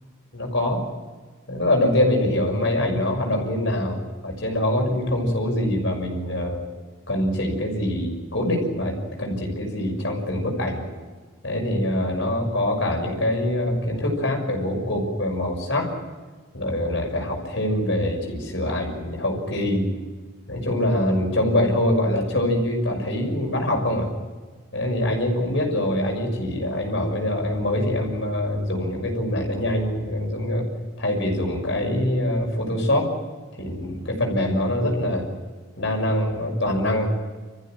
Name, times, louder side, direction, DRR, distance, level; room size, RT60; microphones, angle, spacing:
voice 1, 0.3-0.8 1.5-6.6 7.1-10.9 11.4-15.9 16.5-19.9 20.5-24.1 24.7-30.7 31.0-33.1 33.5-35.3 35.8-37.1, left 1 dB, 55° left, 2 dB, 6.4 m, -24 dB
28.0 x 15.0 x 9.3 m, 1.4 s
head